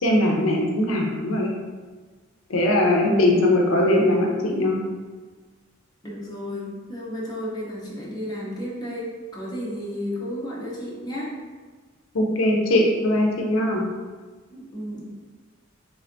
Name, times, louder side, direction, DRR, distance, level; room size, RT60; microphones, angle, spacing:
voice 1, 0.0-1.5 2.5-4.8 12.1-13.8, left 1 dB, 85° left, 0 dB, 0.5 m, -20 dB
voice 2, 3.0-3.5 6.0-11.4 14.5-15.0, equal, 20° left, -7 dB, 0.8 m, -32 dB
3.4 x 3.2 x 2.6 m, 1.4 s
head